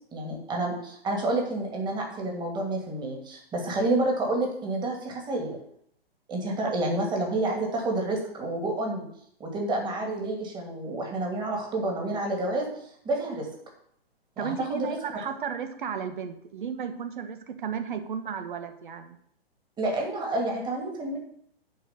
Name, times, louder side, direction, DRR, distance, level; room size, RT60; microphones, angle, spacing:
voice 1, 0.1-5.6 6.3-9.1 9.4-12.7 13.0-13.5 14.4-15.0 19.8-21.2, right 2 dB, 15° right, 0 dB, 2.4 m, -29 dB
voice 2, 14.4-19.2, right 7 dB, 55° right, 9 dB, 1.5 m, -34 dB
11.0 x 4.7 x 6.9 m, 0.69 s
figure-of-eight pair, 125°, 31 cm